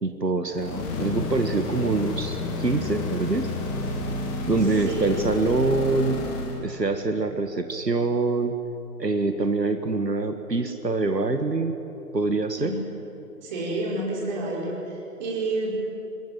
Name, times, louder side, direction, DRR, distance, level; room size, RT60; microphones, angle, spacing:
voice 1, 0.0-3.5 4.5-6.2 6.6-8.6 9.0-11.7 12.1-12.7, right 3 dB, 85° right, 7 dB, 1.7 m, -25 dB
sound 1, 0.5-6.6, left 2 dB, 10° left, 1.9 m, -31 dB
voice 2, 4.9-5.2 12.6-12.7 13.4-14.8 15.2-15.7, right 2 dB, 25° right, -2 dB, 5.1 m, -28 dB
25.5 x 21.0 x 7.8 m, 3.0 s
figure-of-eight pair, 145°, 48 cm